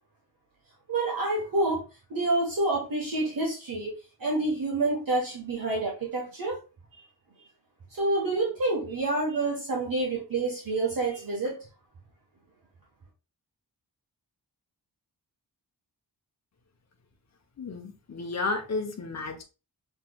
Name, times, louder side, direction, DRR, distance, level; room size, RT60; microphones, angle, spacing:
voice 1, 0.9-1.8 2.1-6.6 6.9-7.0 7.9-11.6, right 2 dB, 55° right, -3 dB, 1.5 m, -28 dB
voice 2, 17.6-19.4, left 3 dB, 40° left, 3 dB, 0.9 m, -32 dB
5.9 x 3.3 x 2.3 m, 0.32 s
wide cardioid pair, 110°, 40 cm